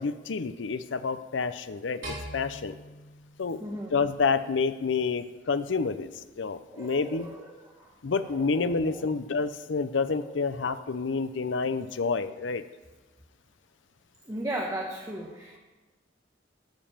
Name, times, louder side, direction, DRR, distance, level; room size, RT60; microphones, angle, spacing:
voice 1, 0.0-2.8 3.4-3.6 3.9-6.1 6.4-7.3 8.0-12.6, left 4 dB, 70° left, 12 dB, 0.6 m, -28 dB
sound 1, 2.0-4.4, right 1 dB, 75° right, 3.9 m, -42 dB
voice 2, 3.6-3.9 6.7-9.1 10.1-10.3 14.3-15.6, right 1 dB, 20° right, -1 dB, 1.1 m, -37 dB
11.5 x 5.2 x 7.4 m, 1.2 s
head